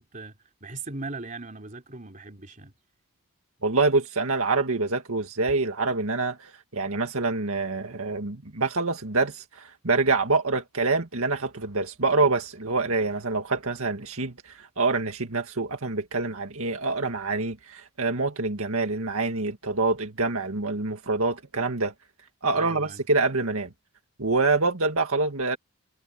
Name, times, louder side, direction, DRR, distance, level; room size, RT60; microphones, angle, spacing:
voice 1, 0.0-2.7 22.5-23.0, right 3 dB, 35° right, 3.8 m, -39 dB
voice 2, 3.6-21.9 22.4-23.7 24.2-25.6, right 3 dB, 70° right, 2.0 m, -26 dB
head